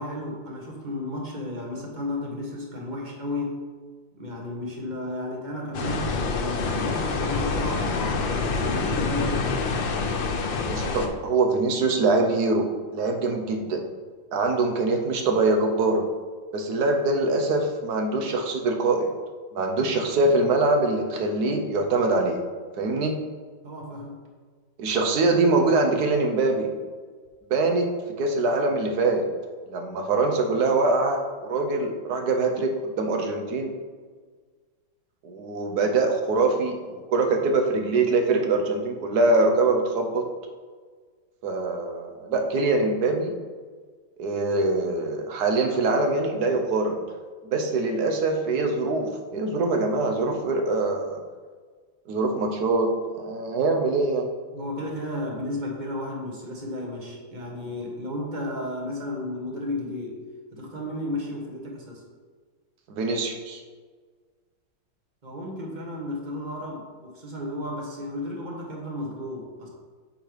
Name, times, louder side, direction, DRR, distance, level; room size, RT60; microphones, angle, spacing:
voice 1, 0.0-3.6 4.2-9.7 23.6-24.2 54.5-60.2 60.5-62.0 65.2-69.7, left 1 dB, 25° right, -1 dB, 1.2 m, -33 dB
sound 1, 5.7-11.1, left 4 dB, 75° left, 1.5 m, -26 dB
voice 2, 10.7-12.7 12.9-13.8 14.3-16.1 16.5-19.1 19.5-22.4 22.8-23.2 24.8-26.7 27.5-29.3 29.7-33.7 35.2-40.3 41.4-43.3 44.2-47.0 47.5-51.2 52.1-52.9 53.2-54.3 62.9-63.6, right 3 dB, 60° right, 3 dB, 1.3 m, -23 dB
8.3 x 6.3 x 3.4 m, 1.5 s
omnidirectional pair, 2.1 m